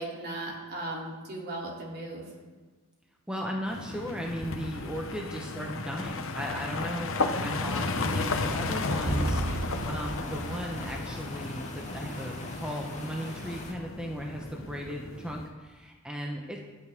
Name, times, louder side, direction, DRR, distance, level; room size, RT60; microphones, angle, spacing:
voice 1, 0.0-2.3, right 2 dB, 50° right, -3 dB, 3.1 m, -37 dB
voice 2, 3.3-16.6, equal, 5° right, 0 dB, 1.0 m, -36 dB
sound 1, 3.7-15.5, left 3 dB, 65° left, 1.0 m, -34 dB
sound 2, 8.7-13.7, left 2 dB, 35° left, 2.4 m, -43 dB
sound 3, 9.1-11.7, right 2 dB, 35° right, 0.5 m, -34 dB
25.0 x 8.3 x 3.6 m, 1.3 s
head